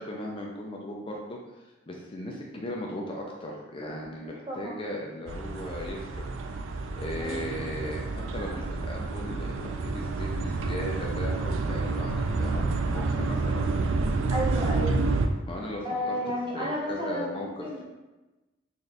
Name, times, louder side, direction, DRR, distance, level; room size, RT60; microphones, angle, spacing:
voice 1, 0.0-1.4 1.6-6.3 7.0-8.0 8.3-9.5 9.8-13.7 15.5-16.1 16.5-17.8, left 1 dB, 30° left, -1 dB, 0.4 m, -37 dB
voice 2, 4.5-4.8 7.2-7.4 14.3-14.9 15.8-17.8, equal, 25° right, -4 dB, 0.9 m, -32 dB
sound 1, 5.3-15.3, right 3 dB, 80° right, 0.4 m, -29 dB
4.1 x 2.5 x 3.3 m, 1.1 s
head